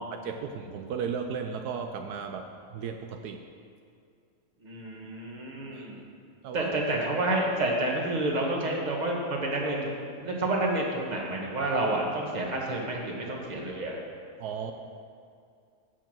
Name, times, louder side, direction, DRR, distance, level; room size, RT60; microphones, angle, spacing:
voice 1, 0.1-3.4 5.7-5.9 6.4-6.7 14.4-14.7, right 6 dB, 80° right, 5 dB, 1.1 m, -35 dB
voice 2, 4.6-5.9 6.5-14.0, right 2 dB, 30° right, -1 dB, 1.5 m, -29 dB
8.7 x 6.9 x 7.6 m, 2.3 s
omnidirectional pair, 1.7 m